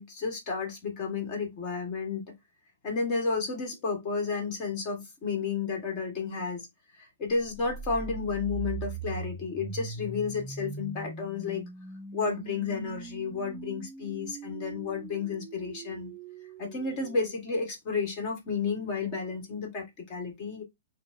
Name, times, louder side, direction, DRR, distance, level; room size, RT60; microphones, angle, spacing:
voice 1, 0.0-2.2 2.8-6.7 7.0-11.6 12.1-16.1 16.6-20.6, left 4 dB, 35° left, 1.4 m, -32 dB
sound 1, 7.4-17.3, right 4 dB, 15° right, 0.4 m, -41 dB
4.3 x 2.0 x 2.5 m
hypercardioid pair, 135°, 0 cm